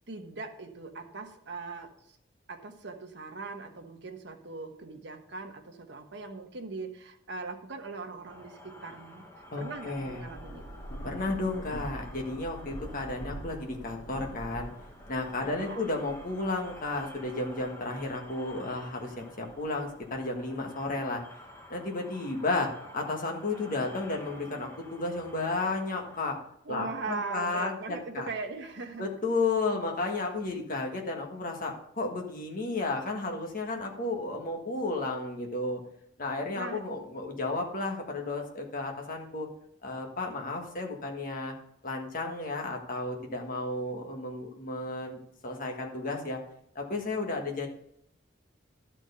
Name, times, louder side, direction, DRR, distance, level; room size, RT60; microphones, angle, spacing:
voice 1, 0.1-1.9 2.5-9.2 9.6-10.8 15.4-15.9 26.6-29.1 36.5-36.8, right 3 dB, 65° right, 4 dB, 1.2 m, -40 dB
sound 1, 8.2-26.2, left 1 dB, 15° left, 1.3 m, -50 dB
voice 2, 9.5-10.2 11.0-14.7 15.1-21.2 21.7-26.4 26.7-28.3 29.0-35.8 36.2-39.5 39.8-41.5 41.8-46.4 46.7-47.7, left 2 dB, 45° left, 2 dB, 1.5 m, -33 dB
Thunder / Rain, 9.8-18.5 19.0-20.4, right 1 dB, 75° left, 2.0 m, -45 dB
12.0 x 4.5 x 6.7 m, 0.71 s
head